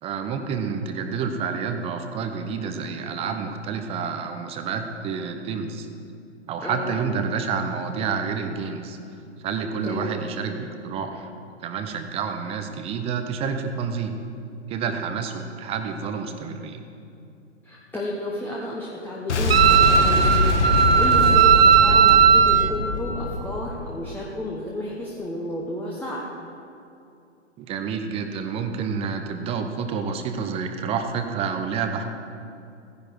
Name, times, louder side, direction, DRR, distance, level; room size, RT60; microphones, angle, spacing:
voice 1, 0.0-5.9 6.5-9.0 9.4-11.3 11.6-14.1 14.7-16.8 21.9-22.2 27.6-32.1, right 6 dB, 15° right, 6 dB, 0.7 m, -29 dB
voice 2, 6.6-6.9 9.8-10.3 17.6-20.5 21.0-26.2, left 1 dB, 5° left, -5 dB, 1.0 m, -32 dB
Boom, 19.3-24.2, left 3 dB, 70° left, 1.5 m, -24 dB
Wind instrument woodwind instrument, 19.5-22.7, right 8 dB, 55° right, 0.9 m, -16 dB
16.0 x 10.5 x 4.7 m, 2.6 s
figure-of-eight pair, 120°, 36 cm